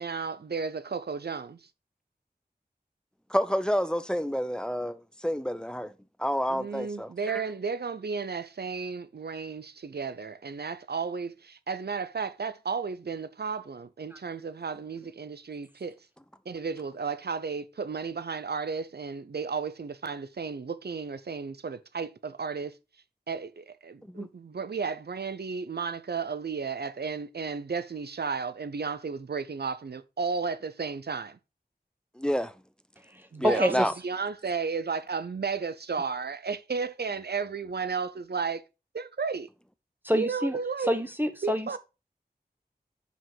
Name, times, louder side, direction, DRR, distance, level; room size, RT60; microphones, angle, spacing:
voice 1, 0.0-1.6 6.5-16.0 16.5-22.8 23.3-31.4 33.3-38.6 38.9-39.5 40.1-40.9 41.4-41.8, right 5 dB, 80° right, 0.6 m, -33 dB
voice 2, 3.3-5.9 6.2-7.4 24.0-24.3 32.2-32.5 33.4-33.9, equal, 5° left, 0.7 m, -29 dB
voice 3, 33.0-33.9 40.0-41.8, equal, 10° right, 1.0 m, -28 dB
5.4 x 5.1 x 5.5 m
wide cardioid pair, 60°, 17 cm